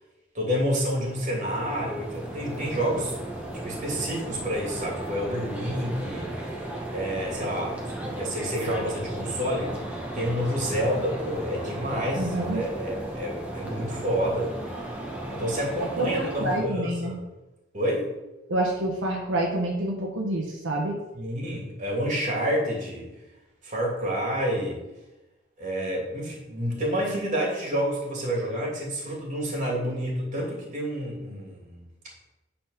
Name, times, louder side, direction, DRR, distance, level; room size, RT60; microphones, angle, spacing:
voice 1, 0.3-3.2 3.6-9.8 10.1-14.5 14.8-14.9 15.3-17.2 17.7-18.1 21.1-23.1 23.6-24.8 25.6-31.8, equal, 40° right, -2 dB, 2.9 m, -29 dB
sound 1, 0.8-16.6, right 1 dB, 5° right, 1.6 m, -35 dB
voice 2, 12.1-12.6 16.0-17.1 18.5-21.0, right 1 dB, 80° right, -1 dB, 1.3 m, -27 dB
9.3 x 4.3 x 5.8 m, 1.0 s
head